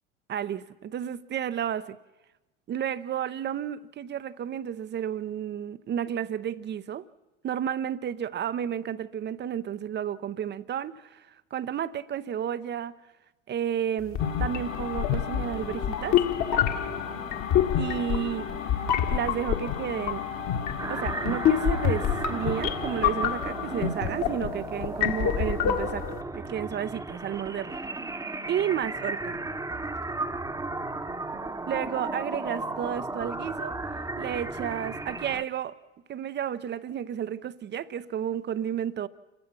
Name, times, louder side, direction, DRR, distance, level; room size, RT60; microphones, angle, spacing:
voice 1, 0.3-2.0 2.7-7.0 7.4-13.0 13.5-16.2 17.8-18.5 19.1-20.2 20.9-26.1 26.3-27.8 28.5-29.4 31.7-33.8 34.2-35.7 36.1-39.1, right 9 dB, 30° right, 0.7 m, -32 dB
sound 1, 14.1-26.2, left 9 dB, 45° left, 1.7 m, -27 dB
sound 2, 14.2-24.0, left 6 dB, 90° left, 3.6 m, -37 dB
sound 3, 20.8-35.4, right 2 dB, 10° right, 1.1 m, -35 dB
29.0 x 15.5 x 6.0 m
hypercardioid pair, 75°, 38 cm